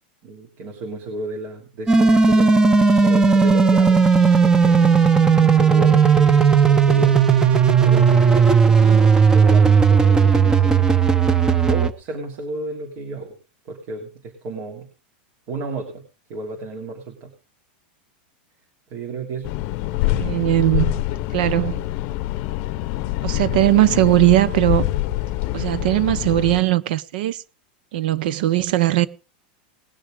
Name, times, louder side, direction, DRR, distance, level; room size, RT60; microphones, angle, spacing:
voice 1, 0.2-2.6 3.0-4.0 4.4-5.1 5.3-7.2 7.8-10.9 11.3-13.3 13.7-14.9 15.5-16.0 16.3-17.3 18.9-19.5 20.1-20.4 20.7-20.9, right 3 dB, 50° right, 3.2 m, -33 dB
sound 1, 1.9-11.9, right 5 dB, 15° right, 0.9 m, -15 dB
sound 2, 19.4-26.6, left 16 dB, 45° left, 0.7 m, -25 dB
voice 2, 20.2-21.0 21.3-21.9 23.2-24.9 25.5-27.4 27.9-29.1, right 16 dB, 65° right, 0.8 m, -19 dB
20.0 x 6.7 x 5.0 m
supercardioid pair, 145°, 5 cm